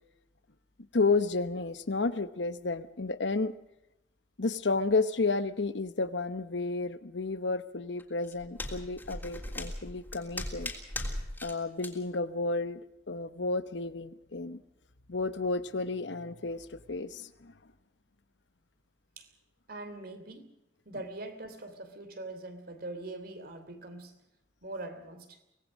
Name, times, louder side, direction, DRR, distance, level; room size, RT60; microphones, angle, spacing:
voice 1, 0.9-3.5 4.4-10.7 11.4-12.8 13.1-14.6 15.1-17.5, left 3 dB, 70° left, 13 dB, 1.0 m, -31 dB
sound 1, 8.0-11.5 11.8-11.9, left 1 dB, 10° left, 3.3 m, -38 dB
voice 2, 19.7-20.5 20.8-24.2 24.6-25.4, right 2 dB, 55° right, 8 dB, 3.1 m, -42 dB
24.5 x 18.5 x 6.3 m, 0.86 s
head